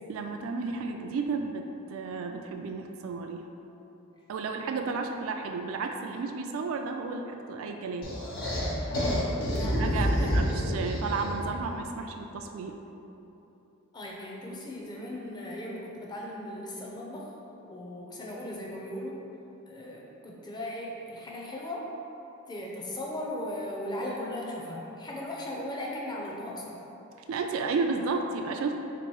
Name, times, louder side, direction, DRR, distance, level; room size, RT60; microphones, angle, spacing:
voice 1, 0.1-3.4 4.3-8.1 9.8-12.8 27.3-28.8, right 4 dB, 70° right, 4 dB, 0.3 m, -32 dB
sound 1, 8.0-11.6, equal, 45° left, 1.2 m, -28 dB
voice 2, 8.9-10.5 13.9-19.2 19.7-21.9 22.5-26.8, left 1 dB, 20° left, -3 dB, 0.5 m, -38 dB
3.5 x 3.0 x 4.5 m, 3.0 s
head